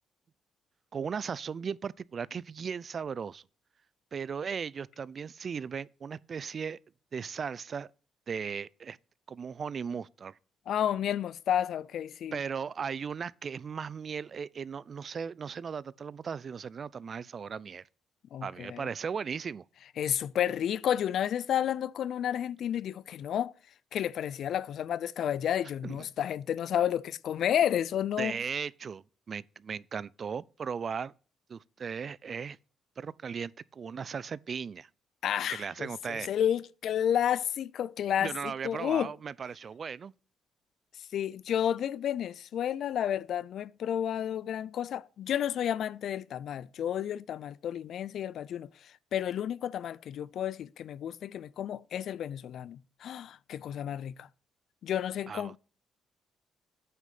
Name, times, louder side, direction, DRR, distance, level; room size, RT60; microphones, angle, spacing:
voice 1, 0.9-3.4 4.1-6.8 7.1-7.9 8.3-9.0 9.3-10.4 12.3-17.8 18.4-19.6 25.8-26.1 28.2-31.1 31.5-32.6 33.0-34.9 35.5-36.3 38.2-40.1 55.3-55.5, right 6 dB, 45° right, 0.4 m, -37 dB
voice 2, 10.7-12.4 18.3-18.9 20.0-23.5 23.9-28.4 35.2-38.3 38.6-39.1 41.1-48.7 49.1-54.3 54.8-55.6, left 10 dB, 70° left, 0.5 m, -31 dB
9.1 x 6.1 x 5.8 m
cardioid pair, 90°, 0 cm